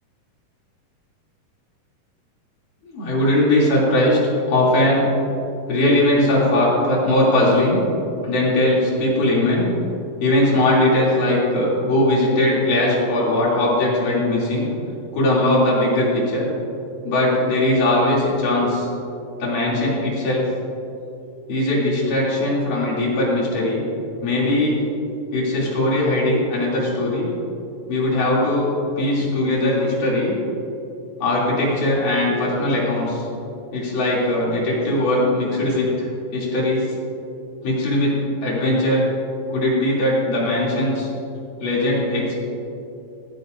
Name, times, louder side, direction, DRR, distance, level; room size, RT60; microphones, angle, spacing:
voice 1, 2.9-4.2 4.5-5.1 5.7-7.8 8.2-9.7 10.2-14.7 15.1-16.5 17.0-18.9 19.4-20.5 21.5-23.8 24.2-24.8 25.3-27.3 27.9-30.4 31.2-33.2 33.7-36.1 36.3-36.9 37.6-39.0 39.5-41.1 41.6-42.3, left 1 dB, 70° left, -6 dB, 4.5 m, -19 dB
18.5 x 14.0 x 2.6 m, 2.8 s
omnidirectional pair, 4.0 m